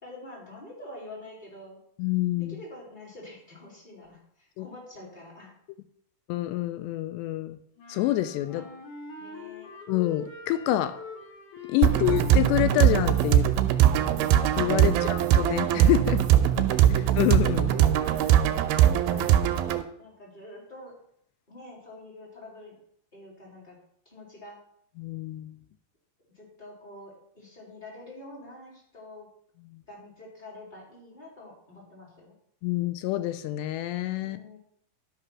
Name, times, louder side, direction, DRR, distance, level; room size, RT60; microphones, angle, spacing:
voice 1, 0.0-1.8 2.5-5.5 8.6-8.7 9.2-9.7 11.8-12.2 14.8-15.2 16.4-17.1 18.3-20.9 21.5-22.8 23.1-23.8 24.0-24.6 26.3-29.3 29.9-32.3 34.2-34.6, left 2 dB, 10° left, -5 dB, 3.8 m, -46 dB
voice 2, 2.0-2.6 4.6-4.7 6.3-7.6 7.9-8.7 9.9-11.0 11.7-13.5 14.6-16.2 16.9-17.8 25.0-25.6 29.6-29.8 32.6-34.4, left 14 dB, 90° left, 12 dB, 2.8 m, -27 dB
sound 1, 7.8-13.5, left 2 dB, 50° left, 3.4 m, -43 dB
sound 2, 11.8-19.8, right 11 dB, 80° right, 2.3 m, -21 dB
12.0 x 5.9 x 6.0 m, 0.69 s
omnidirectional pair, 4.9 m